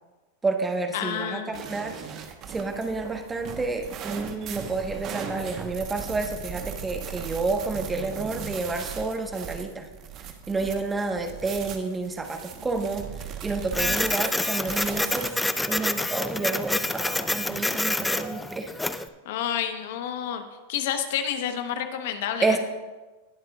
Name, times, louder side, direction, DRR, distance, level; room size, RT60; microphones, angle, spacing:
voice 1, 0.4-1.9 2.5-9.9 10.5-13.1 13.4-15.3 15.7-18.7 22.4-22.6, right 3 dB, 15° right, 5 dB, 1.1 m, -29 dB
voice 2, 0.9-1.6 19.2-20.4 20.7-22.6, left 9 dB, 65° left, 8 dB, 0.9 m, -29 dB
sound 1, 1.5-15.3, right 8 dB, 40° right, 1.1 m, -38 dB
Printer, 13.7-19.1, left 2 dB, 5° left, 0.5 m, -27 dB
19.5 x 7.6 x 2.4 m, 1.2 s
hypercardioid pair, 105°, 0 cm